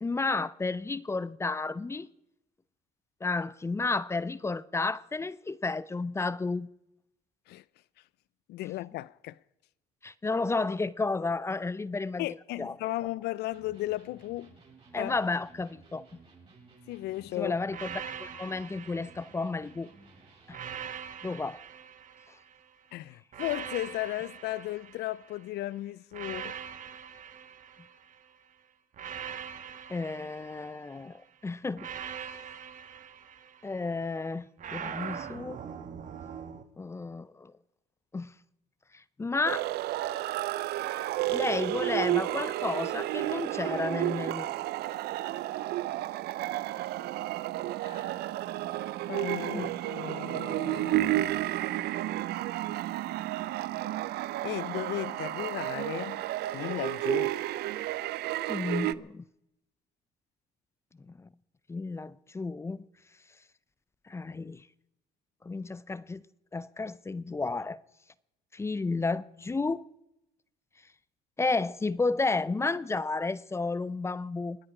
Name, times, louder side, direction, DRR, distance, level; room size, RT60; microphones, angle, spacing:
voice 1, 0.0-2.1 3.2-6.7 10.0-12.3 12.6-12.8 14.9-16.0 17.4-19.9 20.5-20.6 21.2-21.6 22.3-22.4 29.9-31.9 33.6-35.6 36.8-37.5 38.1-38.3 38.9-39.7 41.3-44.5 49.5-49.7 58.5-59.3 61.1-61.3 61.7-62.9 64.1-64.6 65.4-66.2 66.5-67.8 68.5-69.8 71.4-74.6, left 3 dB, 15° left, 0.5 m, -32 dB
voice 2, 8.5-9.4 12.2-14.5 15.0-15.2 16.9-17.5 22.9-26.6 47.8-48.2 48.6-51.5 54.4-56.3 56.5-57.4, left 16 dB, 75° left, 0.5 m, -36 dB
Electric guitar, 13.5-20.8, right 4 dB, 35° right, 7.2 m, -56 dB
sound 1, 17.7-19.9 20.5-22.7 23.3-25.5 26.1-28.3 28.9-31.1 31.8-33.9 34.6-36.6, right 8 dB, 50° right, 1.3 m, -42 dB
sound 2, 39.5-58.9, right 15 dB, 70° right, 0.5 m, -32 dB
29.0 x 9.9 x 4.9 m
cardioid pair, 110°, 17 cm